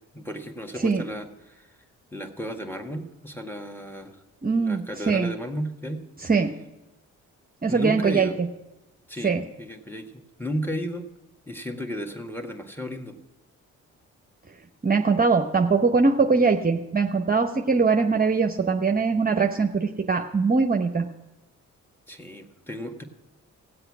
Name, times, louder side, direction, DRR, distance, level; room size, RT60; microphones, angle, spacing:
voice 1, 0.1-1.7 2.1-4.2 4.6-6.0 7.7-8.4 9.1-11.1 11.5-13.2 22.1-23.0, equal, 5° left, 4 dB, 1.8 m, -34 dB
voice 2, 4.4-5.3 6.3-6.5 7.6-8.5 9.2-9.4 14.8-21.0, right 4 dB, 25° right, 4 dB, 0.9 m, -22 dB
17.0 x 7.9 x 6.2 m, 1.0 s
hypercardioid pair, 40°, 37 cm